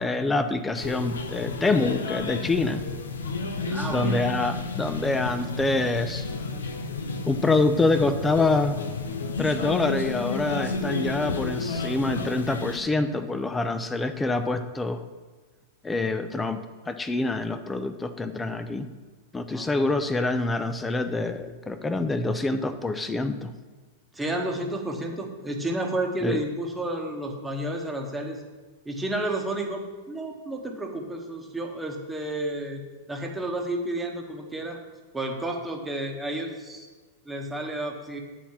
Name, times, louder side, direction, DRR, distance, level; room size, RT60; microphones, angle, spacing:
voice 1, 0.0-2.8 3.9-6.2 7.3-8.8 9.4-15.0 15.8-16.6 16.9-18.9 19.3-23.5 26.2-26.4, left 2 dB, 10° left, 10 dB, 0.7 m, -26 dB
sound 1, 0.7-12.8, left 4 dB, 75° left, 0.7 m, -31 dB
voice 2, 3.7-4.3 19.5-19.7 24.1-28.4 28.8-32.8 33.1-34.8 35.1-36.9 37.2-38.2, right 1 dB, 10° right, 1 dB, 1.4 m, -31 dB
8.9 x 4.2 x 7.3 m, 1.3 s
figure-of-eight pair, 95°, 0 cm